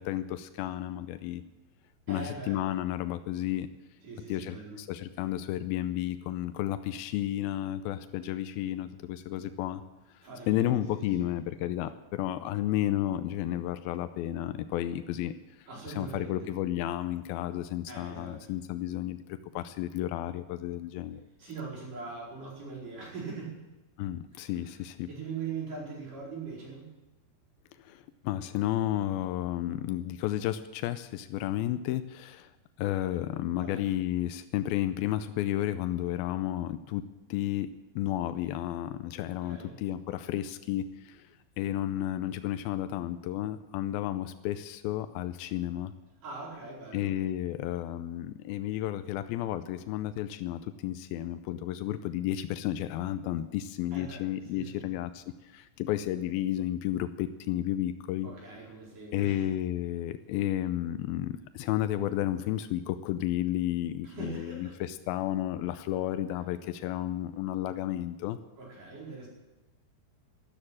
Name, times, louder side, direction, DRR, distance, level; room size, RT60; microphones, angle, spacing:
voice 1, 0.0-1.4 2.1-3.7 4.3-9.8 10.5-15.7 16.0-19.2 19.5-21.2 24.0-25.1 27.8-32.5 32.8-37.0 37.3-37.7 38.0-41.3 41.6-45.9 46.9-58.3 59.1-68.4, left 13 dB, 85° left, 11 dB, 2.1 m, -32 dB
voice 2, 2.1-2.6 4.0-4.8 10.2-11.3 15.7-16.5 17.9-18.4 21.4-23.6 24.3-24.5 25.1-26.9 33.5-33.9 39.3-39.8 46.2-47.1 53.9-54.2 54.5-54.9 58.2-59.5 64.0-64.8 68.6-69.3, right 4 dB, 45° right, -4 dB, 6.1 m, -41 dB
13.0 x 12.0 x 8.7 m, 1.1 s
omnidirectional pair, 5.0 m